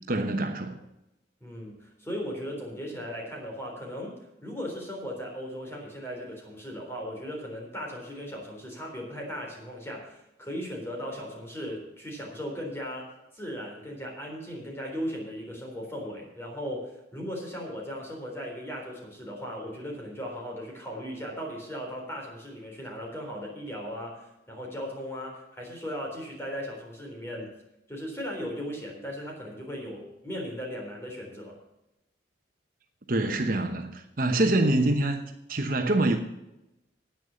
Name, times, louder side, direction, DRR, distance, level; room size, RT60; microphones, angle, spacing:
voice 1, 0.1-0.8 33.1-36.2, right 2 dB, 50° right, 5 dB, 1.0 m, -25 dB
voice 2, 1.4-27.5 27.9-31.6, equal, 15° left, -1 dB, 3.8 m, -37 dB
10.0 x 9.2 x 6.9 m, 0.89 s
head